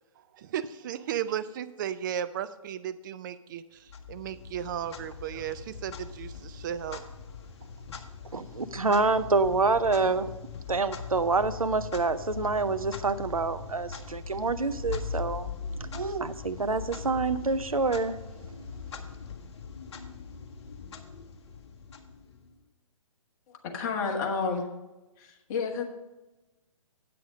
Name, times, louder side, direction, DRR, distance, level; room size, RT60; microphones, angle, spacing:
voice 1, 0.3-7.0, right 9 dB, 35° right, 13 dB, 0.5 m, -35 dB
Clock, 3.9-22.6, left 5 dB, 55° left, 1.1 m, -41 dB
voice 2, 8.3-10.3 10.7-15.5 15.9-18.2, right 3 dB, 90° right, 12 dB, 0.6 m, -27 dB
voice 3, 23.6-24.7 25.2-25.8, left 5 dB, 30° left, 2 dB, 1.5 m, -30 dB
8.6 x 7.7 x 5.0 m, 1.0 s
figure-of-eight pair, 130°, 17 cm